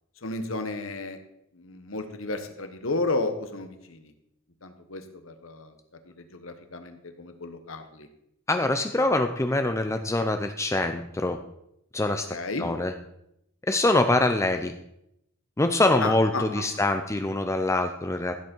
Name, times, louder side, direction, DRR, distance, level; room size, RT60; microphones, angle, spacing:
voice 1, 0.2-1.2 1.5-4.1 4.6-5.7 6.0-8.1 12.3-12.7 16.0-16.6, left 3 dB, 70° left, 8 dB, 1.4 m, -33 dB
voice 2, 8.5-11.4 11.9-12.3 12.6-12.9 13.7-14.7 15.6-18.3, left 2 dB, 15° left, 7 dB, 0.5 m, -24 dB
15.0 x 8.1 x 4.6 m, 0.80 s
head